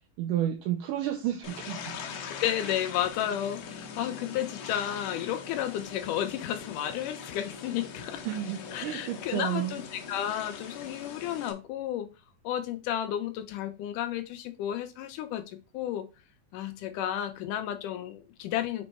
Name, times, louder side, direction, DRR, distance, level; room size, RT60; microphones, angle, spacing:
voice 1, 0.2-2.0 8.3-9.8, right 11 dB, 75° right, 2.1 m, -31 dB
sound 1, 1.4-11.5, left 6 dB, 65° left, 1.8 m, -42 dB
voice 2, 2.3-8.2 8.7-12.1 12.4-15.5 15.7-16.1 16.5-18.9, left 11 dB, 80° left, 2.0 m, -32 dB
5.3 x 4.4 x 4.3 m
omnidirectional pair, 4.1 m